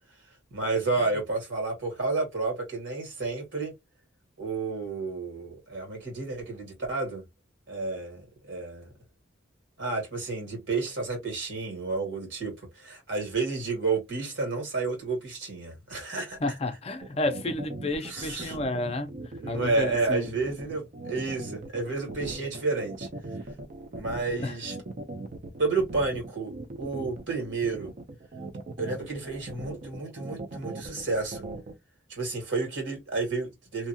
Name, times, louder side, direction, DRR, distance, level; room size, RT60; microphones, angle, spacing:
voice 1, 0.5-3.7 4.4-7.2 7.7-8.9 9.8-16.4 18.0-18.6 19.4-23.1 23.9-24.8 25.6-27.9 28.8-31.5 32.1-33.9, right 3 dB, 75° right, 1.7 m, -31 dB
voice 2, 16.4-19.2 19.5-20.3 24.4-24.5, left 2 dB, 30° left, 0.5 m, -31 dB
sound 1, 17.0-31.7, right 2 dB, 40° right, 0.4 m, -39 dB
2.7 x 2.3 x 2.7 m
head